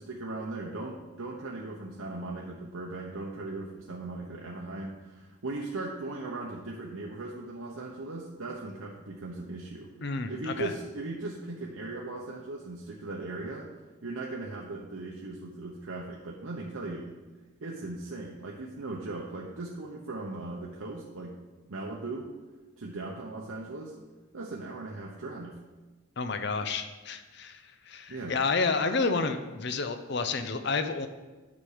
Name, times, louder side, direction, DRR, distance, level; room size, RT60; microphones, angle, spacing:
voice 1, 0.0-9.9 10.3-13.7 14.0-17.1 17.6-21.4 21.7-22.3 22.8-23.9 24.3-25.6 28.1-28.4, right 2 dB, 85° right, -2 dB, 1.0 m, -38 dB
voice 2, 10.0-10.7 26.2-31.1, left 4 dB, 55° left, 9 dB, 0.6 m, -30 dB
9.4 x 6.2 x 5.0 m, 1.2 s
head